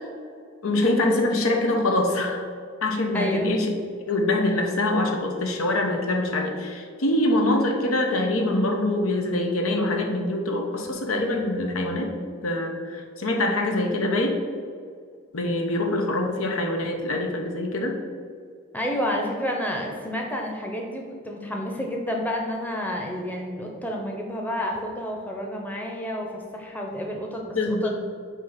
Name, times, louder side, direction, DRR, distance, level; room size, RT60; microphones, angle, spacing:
voice 1, 0.6-2.4 2.8-3.7 4.1-12.1 12.4-14.4 15.3-18.0 27.5-27.9, left 1 dB, 85° left, 2 dB, 1.0 m, -24 dB
voice 2, 3.1-3.6 18.7-27.9, equal, 10° left, 0 dB, 0.7 m, -30 dB
8.2 x 2.9 x 5.7 m, 2.2 s
head